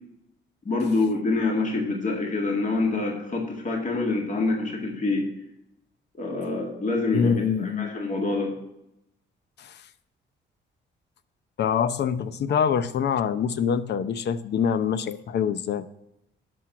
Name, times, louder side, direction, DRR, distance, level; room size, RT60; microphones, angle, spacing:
voice 1, 0.7-5.3 6.2-8.6, left 3 dB, 40° left, 0 dB, 2.0 m, -26 dB
voice 2, 7.1-7.9 9.6-9.8 11.6-15.9, left 7 dB, 60° left, 13 dB, 0.7 m, -25 dB
11.0 x 6.2 x 5.9 m, 0.84 s
cardioid pair, 90°, 20 cm